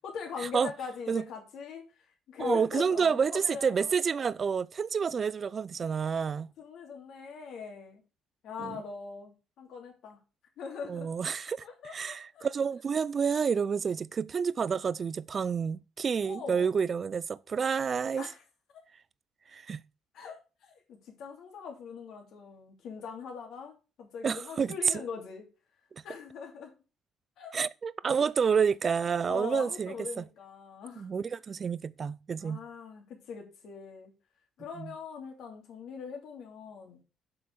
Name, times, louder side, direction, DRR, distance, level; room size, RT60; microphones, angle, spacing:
voice 1, 0.0-1.8 2.3-3.9 6.2-6.3 6.6-8.0 8.4-10.2 10.6-11.1 11.6-12.5 16.2-16.7 18.2-18.4 20.1-25.4 26.0-26.7 27.4-27.6 29.2-31.1 32.4-34.1 34.6-37.0, left 5 dB, 55° left, 2.8 m, -41 dB
voice 2, 2.4-6.5 8.6-8.8 10.9-18.3 19.5-19.8 24.2-24.7 27.5-30.2 31.0-32.6 34.8-34.9, right 6 dB, 25° right, 0.4 m, -29 dB
7.9 x 5.8 x 6.6 m
cardioid pair, 175°, 0 cm